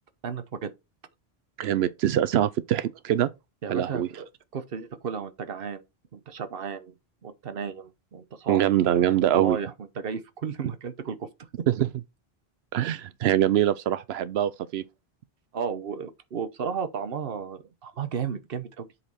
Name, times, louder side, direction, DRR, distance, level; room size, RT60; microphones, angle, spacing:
voice 1, 0.2-0.7 3.6-4.2 4.5-5.8 6.1-6.9 7.2-8.7 9.3-11.3 15.5-18.9, right 6 dB, 65° right, 1.1 m, -33 dB
voice 2, 1.6-3.3 3.7-4.1 8.5-9.6 11.7-11.9 12.7-14.8, right 11 dB, 85° right, 0.8 m, -23 dB
7.8 x 4.2 x 4.2 m
omnidirectional pair, 1.0 m